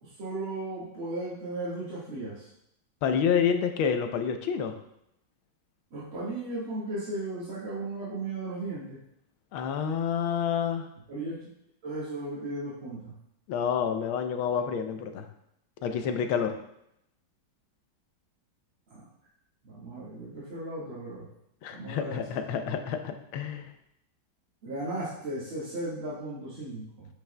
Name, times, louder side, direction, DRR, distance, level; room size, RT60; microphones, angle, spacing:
voice 1, 0.0-2.5 5.9-9.0 11.1-11.3 11.8-13.1 18.9-19.0 19.6-21.3 21.7-22.2 24.6-27.1, right 2 dB, 75° right, -9 dB, 2.5 m, -36 dB
voice 2, 3.0-4.8 9.5-10.9 13.5-15.3 15.8-16.5 21.6-23.7, left 7 dB, 80° left, 7 dB, 1.5 m, -28 dB
10.0 x 5.9 x 2.2 m, 0.77 s
omnidirectional pair, 2.2 m